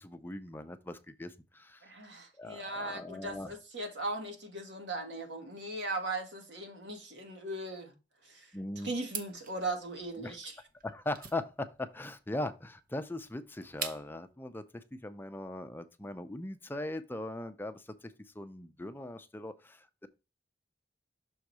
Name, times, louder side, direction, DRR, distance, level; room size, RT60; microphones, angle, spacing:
voice 1, 0.0-1.8 2.4-3.5 8.5-8.9 10.2-10.4 10.8-20.1, left 1 dB, 10° left, 0.5 m, -40 dB
voice 2, 1.8-7.9 8.2-8.5 8.8-10.6, right 2 dB, 85° right, 1.9 m, -38 dB
sound 1, 9.0-14.3, right 6 dB, 50° right, 0.9 m, -44 dB
6.3 x 3.9 x 4.6 m
head